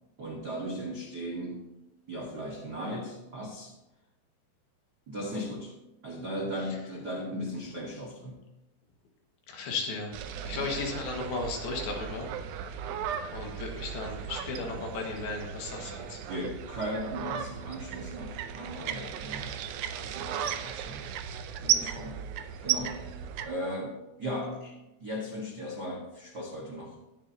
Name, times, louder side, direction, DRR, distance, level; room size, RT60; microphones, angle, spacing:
voice 1, 0.2-1.7 2.1-3.7 5.1-5.7 6.0-8.4 10.5-10.7 16.3-19.6 20.0-21.1 21.6-22.2 22.6-23.2 23.4-27.0, equal, 65° right, -2 dB, 1.0 m, -37 dB
voice 2, 9.5-12.3 13.3-16.2, left 3 dB, 75° left, 1 dB, 3.5 m, -35 dB
sound 1, 10.1-23.5, right 9 dB, 85° right, 1.7 m, -35 dB
19.5 x 7.4 x 2.8 m, 0.95 s
omnidirectional pair, 4.4 m